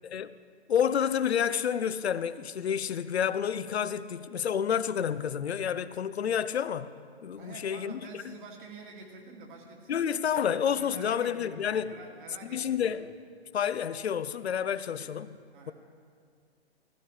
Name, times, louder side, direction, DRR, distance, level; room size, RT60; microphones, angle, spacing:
voice 1, 0.7-6.9 7.2-8.0 9.9-11.9 12.5-13.1 13.5-15.3, left 8 dB, 70° left, 0.6 m, -29 dB
voice 2, 7.3-10.1 10.6-13.0 14.8-15.2 15.5-15.7, right 3 dB, 50° right, 2.3 m, -48 dB
15.0 x 15.0 x 3.2 m
figure-of-eight pair, 125°, 33 cm